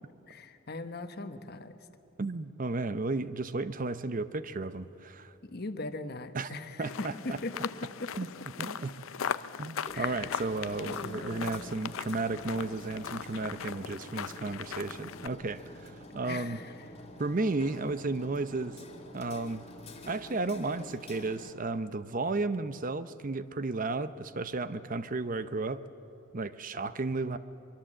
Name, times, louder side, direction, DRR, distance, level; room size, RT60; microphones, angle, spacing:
voice 1, 0.3-1.7 5.5-7.7 8.0-8.1 8.6-8.7 9.9-10.5 10.8-11.6 16.2-16.7, left 2 dB, 50° left, 9 dB, 1.2 m, -40 dB
voice 2, 2.2-5.3 6.3-6.5 6.8-7.4 8.1-8.3 8.6-8.9 9.6-16.6 17.2-18.8 19.1-19.6 20.1-25.8 26.3-27.4, right 3 dB, 40° right, 13 dB, 0.7 m, -33 dB
sound 1, 6.8-15.3, left 7 dB, 85° left, 0.5 m, -39 dB
Hammer, 9.8-21.5, left 1 dB, 30° left, 2.2 m, -48 dB
23.5 x 23.0 x 7.6 m, 2.8 s
head